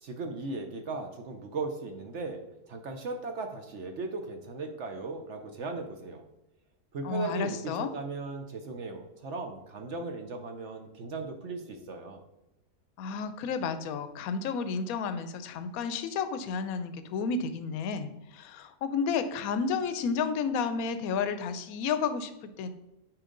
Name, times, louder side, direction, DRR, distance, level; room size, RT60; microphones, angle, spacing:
voice 1, 0.0-2.4 2.7-6.2 6.9-12.2, right 3 dB, 55° right, 5 dB, 0.9 m, -37 dB
voice 2, 7.0-7.9 13.0-22.7, left 5 dB, 70° left, 11 dB, 1.0 m, -31 dB
8.9 x 4.8 x 3.8 m, 0.94 s
omnidirectional pair, 1.7 m